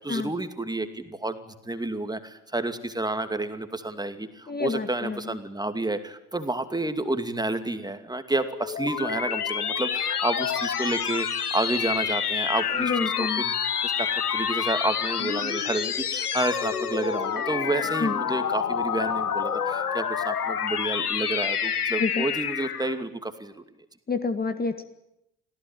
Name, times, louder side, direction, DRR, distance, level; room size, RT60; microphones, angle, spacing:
voice 1, 0.0-1.4 1.6-13.1 13.4-13.5 13.8-14.1 14.3-23.6, right 2 dB, 10° right, 8 dB, 2.5 m, -30 dB
voice 2, 4.5-5.4 12.7-13.4 18.0-18.2 22.0-22.3 24.1-24.8, left 4 dB, 20° left, 9 dB, 1.8 m, -28 dB
sound 1, 8.3-23.0, left 7 dB, 90° left, 1.2 m, -28 dB
27.0 x 17.0 x 9.1 m, 0.85 s
figure-of-eight pair, 65°, 44 cm